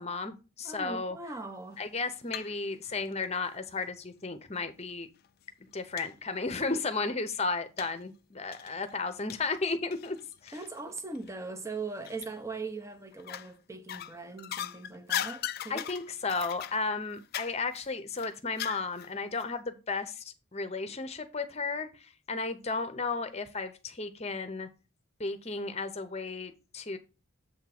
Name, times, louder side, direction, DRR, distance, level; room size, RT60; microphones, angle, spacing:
voice 1, 0.0-1.2 1.8-5.1 5.7-10.2 10.4-10.6 15.7-24.7 25.2-27.0, left 3 dB, 30° left, 0.8 m, -34 dB
voice 2, 0.6-1.8 10.5-15.9, right 3 dB, 15° right, 0.7 m, -40 dB
sound 1, 1.8-2.6 2.9-3.9 4.7-4.8 5.2-5.3 6.0-6.1 6.5-6.6 7.8-8.0 8.5-10.8 11.1-11.3 12.0-12.6 13.1-13.5 13.9-19.1 19.4-19.5, left 10 dB, 45° left, 0.3 m, -39 dB
7.7 x 3.7 x 5.8 m
head